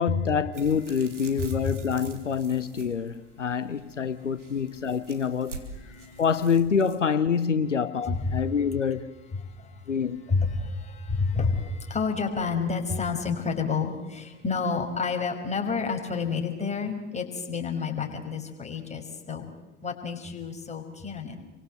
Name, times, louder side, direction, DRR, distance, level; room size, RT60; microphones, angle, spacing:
voice 1, 0.0-5.6 6.2-9.1 9.9-10.2, left 6 dB, 85° left, 0.9 m, -26 dB
sound 1, 0.5-7.0, right 4 dB, 85° right, 3.3 m, -46 dB
voice 2, 1.4-1.9 4.0-4.9 5.6-6.2 8.0-8.7 9.3-19.5 19.8-21.4, left 4 dB, 20° left, 5.8 m, -30 dB
30.0 x 24.5 x 7.9 m
figure-of-eight pair, 75°, 35 cm